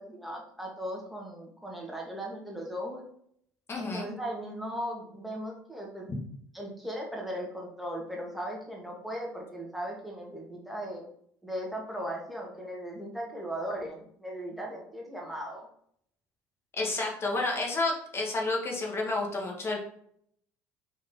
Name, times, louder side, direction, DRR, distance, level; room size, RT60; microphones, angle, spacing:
voice 1, 0.0-3.0 3.7-6.1 6.5-11.0 11.4-15.7, equal, ahead, -2 dB, 1.4 m, -37 dB
voice 2, 3.7-4.1 16.7-19.8, left 2 dB, 35° left, 0 dB, 1.4 m, -30 dB
4.1 x 3.1 x 3.7 m, 0.67 s
supercardioid pair, 90°, 8 cm